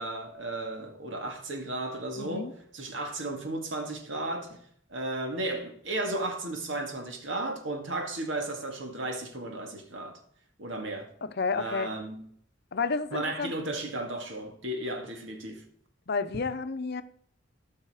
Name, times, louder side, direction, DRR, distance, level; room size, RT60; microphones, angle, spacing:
voice 1, 0.0-4.6 4.9-10.2 10.6-11.1 11.5-12.2 13.1-15.6, right 2 dB, 80° right, 2.1 m, -34 dB
voice 2, 2.2-2.5 11.2-11.9 12.7-13.5 16.1-17.0, left 4 dB, 55° left, 0.7 m, -31 dB
17.0 x 5.8 x 4.9 m
head